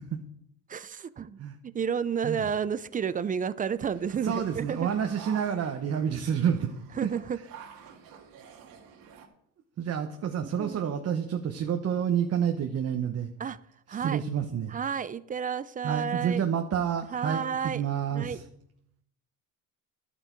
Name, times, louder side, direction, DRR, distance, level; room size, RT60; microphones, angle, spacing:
voice 1, 0.7-4.9 7.0-7.4 10.6-10.8 13.4-13.6 13.9-14.2 14.7-16.4 17.1-17.8 18.1-18.4, right 7 dB, 25° right, 0.4 m, -31 dB
sound 1, 3.8-9.3, right 7 dB, 70° right, 1.9 m, -49 dB
voice 2, 4.2-6.7 7.0-7.1 9.8-13.3 14.0-14.8 15.8-18.4, right 8 dB, 40° right, 1.0 m, -29 dB
11.5 x 8.2 x 4.6 m
cardioid pair, 110°, 36 cm